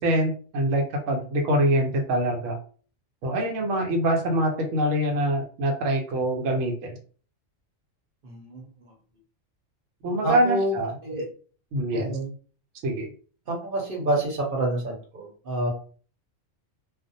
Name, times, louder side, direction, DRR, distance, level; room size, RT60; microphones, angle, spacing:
voice 1, 0.0-2.6 3.2-7.0 10.0-10.9 11.7-12.2 12.8-13.1, right 1 dB, 75° right, 3 dB, 1.0 m, -24 dB
voice 2, 8.2-8.9 10.2-10.7 11.0-11.2 11.9-12.3 13.5-15.7, right 1 dB, 50° right, -1 dB, 0.9 m, -28 dB
2.4 x 2.1 x 2.6 m, 0.42 s
omnidirectional pair, 1.3 m